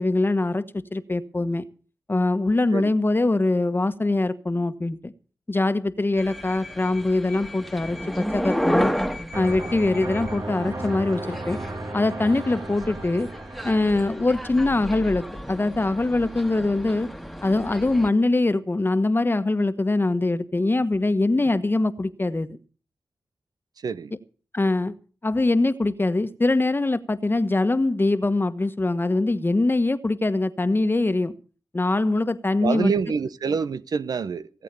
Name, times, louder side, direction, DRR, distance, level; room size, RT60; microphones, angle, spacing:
voice 1, 0.0-1.6 2.1-5.1 5.5-8.9 9.3-11.6 11.9-13.3 13.6-17.1 17.4-22.6 24.5-24.9 25.2-31.4 31.7-32.9, left 2 dB, 30° left, 11 dB, 1.3 m, -23 dB
sound 1, 6.2-18.1, equal, ahead, 1.8 m, -32 dB
sound 2, 9.3-16.0, right 2 dB, 50° right, 1.9 m, -36 dB
voice 2, 32.6-34.6, right 5 dB, 75° right, 15 dB, 0.7 m, -26 dB
17.5 x 8.4 x 6.9 m, 0.39 s
cardioid pair, 45°, 7 cm